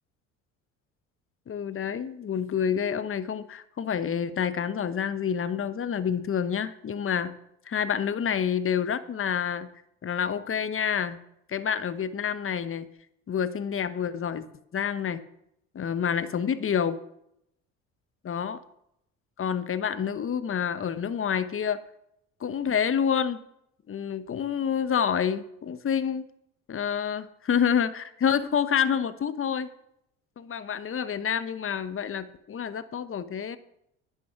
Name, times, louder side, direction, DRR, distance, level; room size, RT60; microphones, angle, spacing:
voice 1, 1.5-7.3 7.7-9.7 10.0-11.2 11.5-12.9 13.3-14.5 14.7-15.2 15.7-17.0 18.2-18.6 19.4-21.8 22.4-23.4 23.9-26.3 26.7-29.7 30.4-33.6, left 7 dB, 30° left, 13 dB, 1.1 m, -28 dB
10.5 x 10.0 x 6.0 m, 0.77 s
hypercardioid pair, 60°, 40 cm